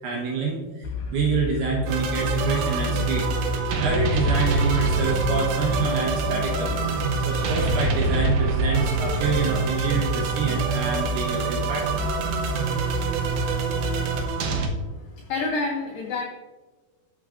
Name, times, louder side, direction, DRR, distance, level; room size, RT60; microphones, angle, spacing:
voice 1, 0.0-3.3 3.8-11.9, right 4 dB, 70° right, -2 dB, 2.9 m, -27 dB
sound 1, 0.8-14.3, left 4 dB, 65° left, 2.5 m, -31 dB
sound 2, 1.9-14.7, right 5 dB, 90° right, 2.1 m, -25 dB
voice 2, 14.7-16.2, left 3 dB, 90° left, -1 dB, 1.9 m, -29 dB
13.5 x 6.1 x 2.6 m, 1.3 s
omnidirectional pair, 5.4 m